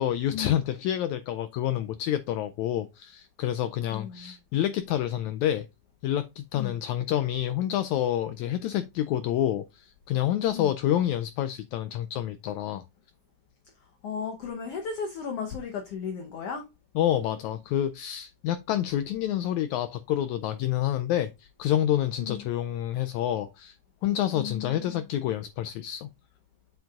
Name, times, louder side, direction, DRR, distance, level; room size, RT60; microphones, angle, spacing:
voice 1, 0.0-5.7 6.0-12.8 16.9-23.8 24.0-26.1, left 11 dB, 85° left, 1.6 m, -28 dB
voice 2, 3.9-4.4 6.5-6.8 10.5-10.7 14.0-16.6 22.2-22.5 24.3-25.1, left 6 dB, 65° left, 1.5 m, -35 dB
7.7 x 7.0 x 2.4 m
omnidirectional pair, 3.8 m